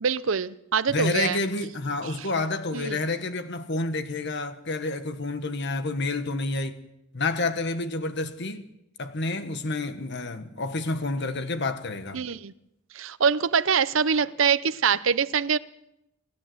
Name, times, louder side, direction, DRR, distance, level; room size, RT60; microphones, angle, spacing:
voice 1, 0.0-1.4 2.2-2.3 2.7-3.0 12.1-12.5 12.9-15.6, right 6 dB, 65° right, 0.7 m, -24 dB
voice 2, 0.9-6.8 7.1-8.6 9.0-12.2, left 3 dB, 55° left, 1.4 m, -29 dB
28.0 x 12.5 x 7.9 m
head